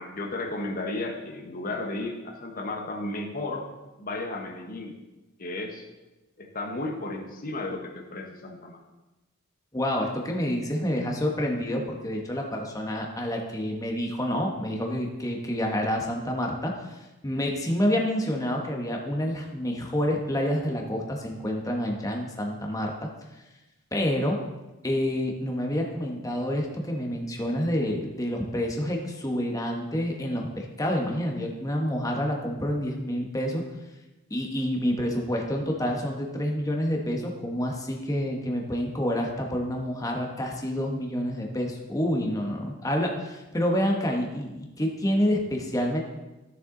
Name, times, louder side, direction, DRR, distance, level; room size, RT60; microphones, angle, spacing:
voice 1, 0.0-3.7 4.0-5.0 5.4-5.8 6.4-8.8, left 2 dB, 40° left, 1 dB, 1.1 m, -34 dB
voice 2, 9.7-23.1 23.9-24.4 24.8-33.6 34.3-46.0, equal, 15° left, 1 dB, 1.2 m, -28 dB
14.0 x 6.7 x 3.9 m, 1.1 s
head